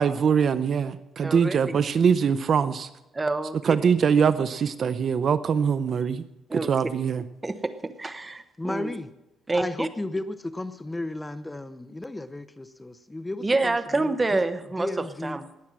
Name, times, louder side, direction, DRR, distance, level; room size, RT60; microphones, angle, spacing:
voice 1, 0.0-2.9 3.6-6.2 6.5-7.2, right 6 dB, 50° right, 14 dB, 0.6 m, -23 dB
voice 2, 1.2-1.7 3.1-3.6 6.5-6.7 7.4-7.7 8.0-9.0 9.5-9.9 13.4-14.9 15.2-15.4, right 3 dB, 20° right, 11 dB, 1.0 m, -27 dB
voice 3, 8.6-9.1 9.5-14.4 14.8-15.4, left 2 dB, 10° left, 12 dB, 0.6 m, -34 dB
19.0 x 7.2 x 7.6 m, 0.95 s
cardioid pair, 120°, 0 cm